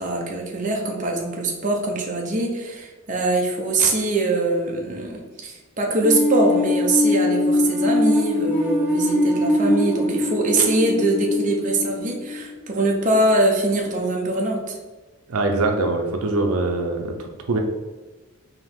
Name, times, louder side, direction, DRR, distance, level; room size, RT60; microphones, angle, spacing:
voice 1, 0.0-14.8, right 2 dB, 35° right, 0 dB, 0.6 m, -23 dB
sound 1, 6.0-12.9, left 2 dB, 10° right, 1.4 m, -22 dB
voice 2, 15.3-17.6, right 2 dB, 85° right, 3 dB, 0.6 m, -23 dB
4.5 x 2.9 x 3.6 m, 1.3 s
head